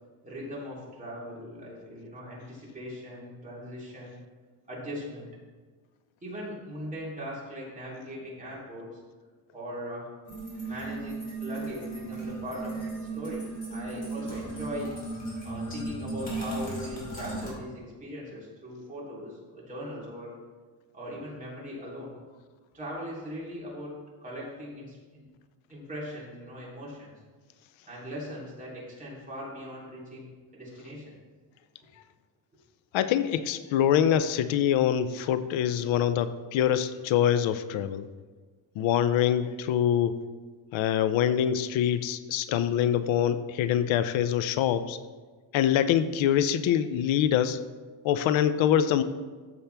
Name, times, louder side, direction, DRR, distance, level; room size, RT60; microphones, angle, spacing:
voice 1, 0.2-4.2 4.7-5.3 6.2-9.0 9.5-10.1 10.6-14.9 15.4-20.3 20.9-22.2 22.7-23.9 24.2-25.3 25.7-27.1 27.9-31.0, equal, 15° right, -6 dB, 3.3 m, -40 dB
sound 1, 10.3-17.5, right 2 dB, 20° left, 3.1 m, -36 dB
voice 2, 32.9-38.0 38.8-40.2 40.7-45.0 45.5-47.6 48.0-49.0, left 10 dB, 90° left, 12 dB, 0.7 m, -25 dB
14.0 x 7.2 x 3.4 m, 1.4 s
cardioid pair, 150°, 45 cm